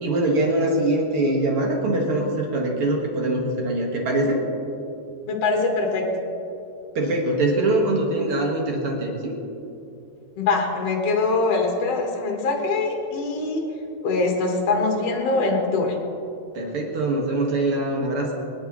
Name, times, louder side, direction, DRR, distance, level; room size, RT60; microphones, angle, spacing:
voice 1, 0.0-4.4 6.9-9.3 16.5-18.3, right 1 dB, 55° right, -1 dB, 1.5 m, -23 dB
voice 2, 5.3-6.1 10.4-13.6 14.0-16.0, left 3 dB, 55° left, 0 dB, 1.9 m, -23 dB
23.5 x 10.5 x 3.1 m, 2.8 s
omnidirectional pair, 4.8 m